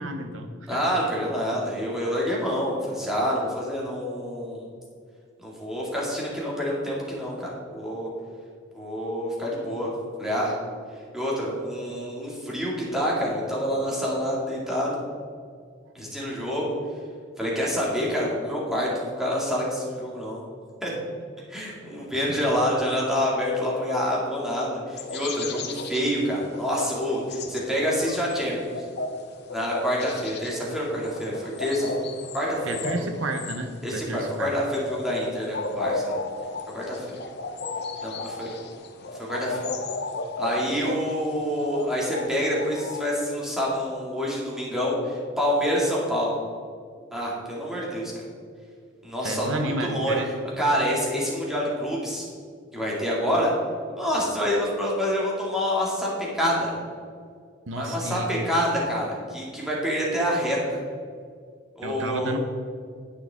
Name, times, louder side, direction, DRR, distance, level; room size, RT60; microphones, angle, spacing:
voice 1, 0.0-0.8 22.1-22.5 32.7-34.5 49.2-50.3 57.7-58.5 61.8-62.4, right 1 dB, 75° right, 5 dB, 0.8 m, -31 dB
voice 2, 0.7-4.6 5.4-8.1 8.7-9.9 10.2-10.5 11.1-15.0 15.9-16.7 17.4-20.4 20.8-20.9 21.5-28.8 29.5-31.9 32.3-32.9 33.8-36.2 36.7-37.1 38.0-38.5 39.2-39.7 40.4-46.3 47.1-48.1 49.0-50.2 50.6-52.2 52.7-53.5 54.0-56.7 57.7-60.6 61.8-62.4, equal, ahead, -5 dB, 2.3 m, -27 dB
sound 1, 24.9-43.1, left 2 dB, 55° left, 0.9 m, -35 dB
9.8 x 8.8 x 3.6 m, 2.1 s
head